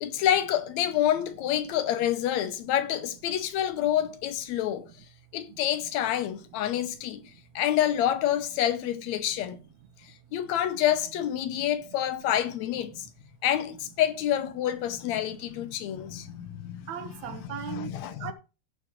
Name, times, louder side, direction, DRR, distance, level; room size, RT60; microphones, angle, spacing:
voice 1, 0.0-4.9 5.3-7.2 7.6-9.6 10.3-13.1 13.4-16.9 17.7-18.3, left 11 dB, 75° left, 1.9 m, -27 dB
voice 2, 5.5-5.9 6.2-7.4 9.3-9.4 10.2-10.8 11.5-11.8 12.3-12.4 12.9-13.1 15.8-18.3, right 9 dB, 75° right, 2.3 m, -43 dB
16.5 x 6.2 x 3.1 m
omnidirectional pair, 3.4 m